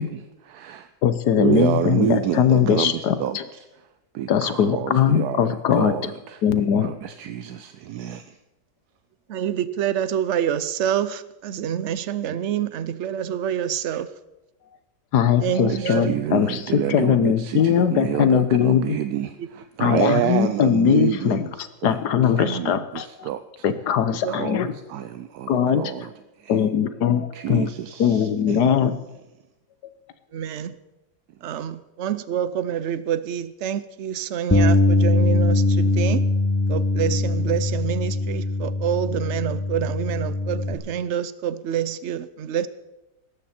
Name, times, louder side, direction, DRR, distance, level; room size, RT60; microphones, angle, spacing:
voice 1, 0.0-0.9 1.3-3.8 4.1-6.4 6.8-8.4 12.4-12.6 15.6-22.0 22.2-23.7 24.3-28.7, right 11 dB, 75° right, 10 dB, 1.1 m, -28 dB
voice 2, 1.0-3.4 4.3-5.9 6.4-6.9 15.1-18.8 19.8-21.4 21.8-23.3 23.6-24.7 25.5-25.8 26.5-27.7 28.0-28.9, left 8 dB, 90° left, 12 dB, 1.5 m, -20 dB
voice 3, 9.3-14.1 15.4-16.2 19.4-19.5 22.4-22.7 24.2-24.4 30.3-30.8 31.4-36.2 36.7-42.7, right 9 dB, 60° right, 15 dB, 0.8 m, -27 dB
Bass guitar, 34.5-40.7, left 2 dB, 20° left, 0.4 m, -21 dB
17.5 x 13.5 x 4.4 m, 1.0 s
omnidirectional pair, 1.7 m